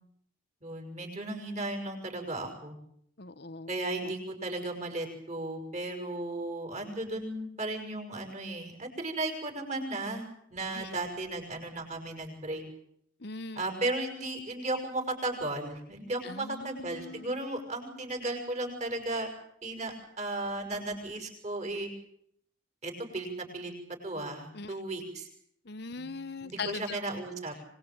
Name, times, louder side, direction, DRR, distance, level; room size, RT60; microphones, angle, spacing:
voice 1, 0.6-2.8 3.7-10.2 10.5-12.6 13.5-19.3 19.6-21.9 22.8-23.7 24.0-25.3 26.0-26.1 26.4-27.5, right 2 dB, 35° right, 4 dB, 6.5 m, -35 dB
voice 2, 3.2-4.1 10.7-11.0 13.2-13.6 16.2-17.4 24.5-24.7 25.6-27.0, left 4 dB, 55° left, 13 dB, 1.0 m, -41 dB
25.0 x 21.0 x 8.9 m, 0.70 s
head